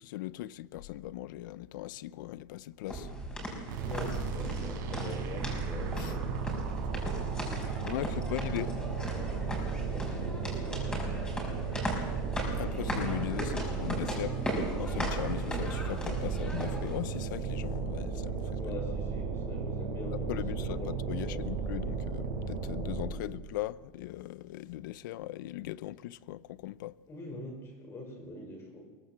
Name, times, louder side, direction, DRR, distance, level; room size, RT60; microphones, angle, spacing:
voice 1, 0.0-3.1 6.0-6.1 7.8-8.7 12.5-14.4 14.8-18.7 20.3-27.0, left 15 dB, 85° left, 0.6 m, -39 dB
sound 1, 2.9-17.0, right 1 dB, 10° left, 5.4 m, -38 dB
sound 2, 3.7-23.3, right 5 dB, 80° right, 5.1 m, -35 dB
voice 2, 3.8-6.4 8.4-8.7 9.6-11.3 18.6-21.5 23.2-23.3 27.1-28.8, left 2 dB, 25° left, 5.7 m, -44 dB
23.0 x 17.5 x 7.5 m
supercardioid pair, 160°, 10 cm